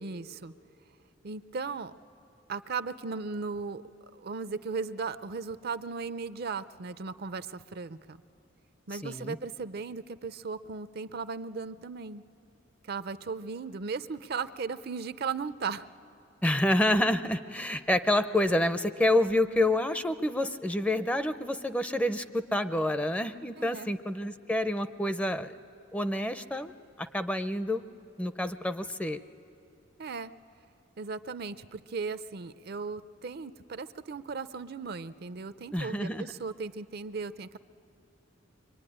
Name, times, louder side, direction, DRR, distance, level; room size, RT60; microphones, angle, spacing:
voice 1, 0.0-0.5 1.2-1.9 2.5-3.8 4.1-8.2 8.9-12.2 12.8-15.9 23.6-23.9 30.0-30.3 31.0-37.6, right 4 dB, 55° right, 14 dB, 0.6 m, -37 dB
voice 2, 9.0-9.4 16.4-25.5 25.9-26.7 27.0-27.8 28.2-29.2 35.7-36.3, left 1 dB, 5° left, 11 dB, 0.5 m, -28 dB
24.5 x 24.0 x 10.0 m, 2.8 s
head